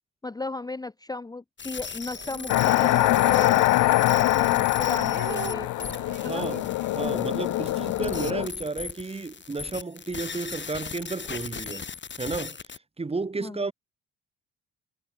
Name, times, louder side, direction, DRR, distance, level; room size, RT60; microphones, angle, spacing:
voice 1, 0.2-5.7 6.2-6.5 13.4-13.6, left 3 dB, 15° left, 0.7 m, -36 dB
sound 1, 1.6-12.8, left 6 dB, 40° left, 4.1 m, -38 dB
sound 2, 2.1-4.3 4.6-8.5 8.8-8.9 9.2-9.7, right 12 dB, 75° right, 6.2 m, -42 dB
sound 3, 2.5-8.5, left 18 dB, 90° left, 0.8 m, -23 dB
voice 2, 6.2-6.7 6.9-11.9 12.2-12.6 13.0-13.7, right 3 dB, 20° right, 1.4 m, -32 dB
cardioid pair, 90°, 30 cm